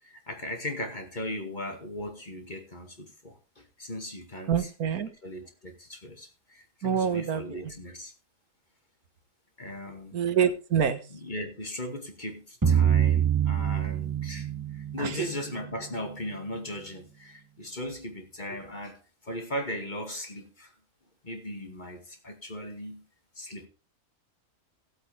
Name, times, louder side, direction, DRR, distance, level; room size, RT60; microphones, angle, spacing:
voice 1, 0.0-4.7 5.2-8.1 9.6-10.2 11.1-20.7 21.2-23.0 23.4-23.7, left 1 dB, 30° left, 2.3 m, -38 dB
voice 2, 4.5-5.1 6.8-7.6 10.1-11.0 15.0-15.3, right 7 dB, 80° right, 1.8 m, -26 dB
sound 1, 12.6-15.7, right 9 dB, 15° right, 0.7 m, -25 dB
17.5 x 8.0 x 3.5 m
omnidirectional pair, 1.5 m